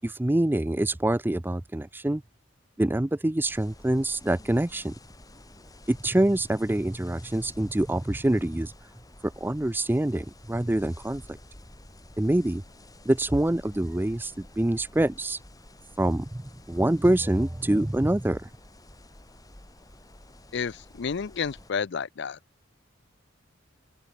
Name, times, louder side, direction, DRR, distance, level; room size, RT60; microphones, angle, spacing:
voice 1, 0.0-2.2 2.8-4.9 5.9-8.7 9.2-11.4 12.2-12.6 13.1-15.4 16.0-18.5, right 1 dB, 10° right, 0.4 m, -25 dB
sound 1, 3.5-21.7, left 1 dB, 20° left, 3.5 m, -50 dB
voice 2, 20.5-22.4, left 6 dB, 60° left, 0.5 m, -31 dB
open air
head